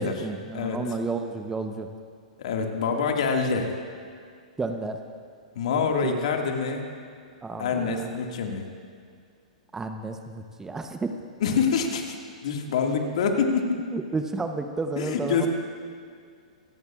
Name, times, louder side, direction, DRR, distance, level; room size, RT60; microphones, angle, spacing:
voice 1, 0.0-1.9 4.6-5.0 6.0-6.2 7.4-8.0 9.7-11.1 13.9-15.5, right 3 dB, 10° right, 6 dB, 0.8 m, -31 dB
voice 2, 2.4-3.7 5.6-6.9 7.6-8.7 11.4-12.1 12.4-13.8 15.0-15.5, left 5 dB, 60° left, 2 dB, 2.0 m, -26 dB
26.0 x 15.0 x 2.5 m, 2.2 s
hypercardioid pair, 110°, 4 cm